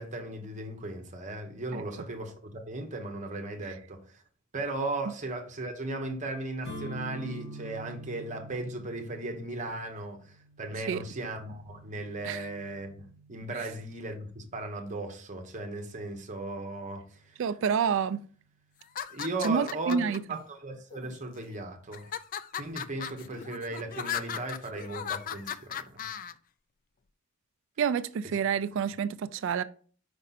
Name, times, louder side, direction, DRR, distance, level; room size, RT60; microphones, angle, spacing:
voice 1, 0.0-4.2 4.5-13.0 13.3-17.4 19.1-22.1 22.6-26.0, right 2 dB, 35° right, 1.1 m, -37 dB
sound 1, 6.6-14.4, right 1 dB, 85° left, 3.5 m, -46 dB
voice 2, 17.4-18.3 19.4-20.2 27.8-29.6, right 7 dB, 60° right, 0.3 m, -28 dB
sound 2, 18.8-20.2 20.9-21.4 21.9-26.3, left 8 dB, 40° left, 0.3 m, -37 dB
5.3 x 5.1 x 4.1 m
head